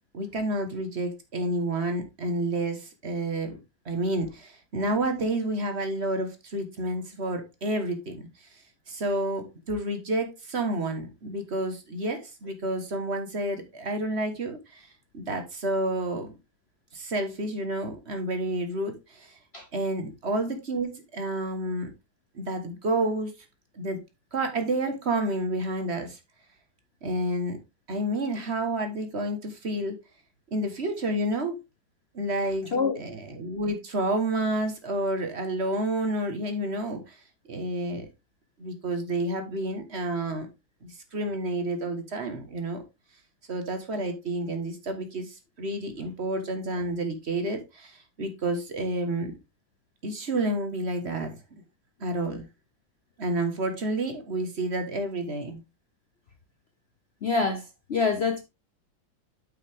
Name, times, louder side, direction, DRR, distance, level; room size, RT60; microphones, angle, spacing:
voice 1, 0.1-3.5 3.8-8.3 8.9-14.9 15.1-16.3 16.9-19.4 19.7-21.9 22.3-23.3 23.7-24.0 24.3-26.2 27.0-27.6 27.9-30.0 30.5-31.6 32.1-37.2 37.5-38.1 38.6-40.5 40.8-42.8 43.5-49.3 50.0-51.4 52.0-52.4 53.2-55.6, right 1 dB, 35° right, 1.5 m, -30 dB
voice 2, 57.2-57.6 57.9-58.4, left 4 dB, 50° left, 0.8 m, -25 dB
8.6 x 5.8 x 3.5 m
omnidirectional pair, 2.1 m